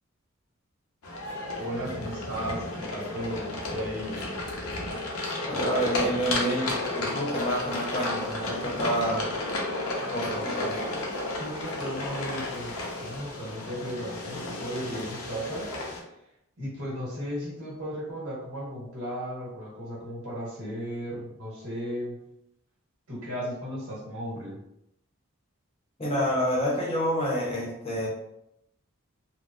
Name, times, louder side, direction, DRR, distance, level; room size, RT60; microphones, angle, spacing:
sound 1, 1.0-16.0, left 2 dB, 90° left, 0.6 m, -33 dB
voice 1, 1.6-4.2 11.4-15.7 16.6-22.2 23.1-24.6, equal, 80° right, -5 dB, 1.2 m, -35 dB
voice 2, 5.4-9.3 10.0-10.7 26.0-28.1, equal, 25° left, -4 dB, 0.7 m, -28 dB
3.3 x 2.0 x 2.5 m, 0.81 s
head